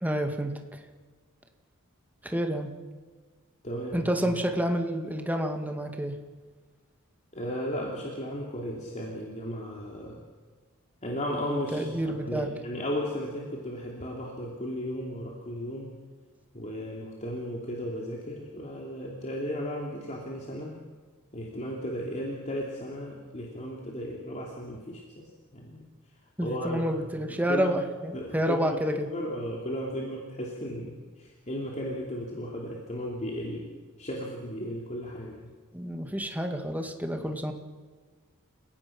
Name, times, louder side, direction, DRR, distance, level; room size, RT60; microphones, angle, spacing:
voice 1, 0.0-0.8 2.2-2.7 3.9-6.2 11.7-12.5 26.4-29.1 35.7-37.5, equal, 10° right, 5 dB, 2.0 m, -29 dB
voice 2, 3.6-4.1 7.3-10.2 11.0-15.9 16.5-20.8 21.3-25.2 25.5-25.9 26.4-26.8 27.5-27.7 28.1-33.7 34.0-35.5, equal, 35° left, -2 dB, 3.0 m, -35 dB
29.5 x 17.0 x 6.0 m, 1.5 s
head